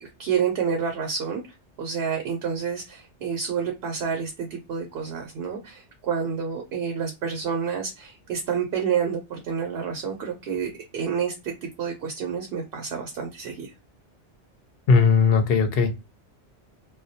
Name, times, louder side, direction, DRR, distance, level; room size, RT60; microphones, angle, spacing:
voice 1, 0.0-1.4 1.8-13.7, right 7 dB, 65° right, 0.8 m, -29 dB
voice 2, 14.9-15.9, left 5 dB, 65° left, 0.7 m, -18 dB
2.2 x 2.1 x 2.7 m
omnidirectional pair, 1.2 m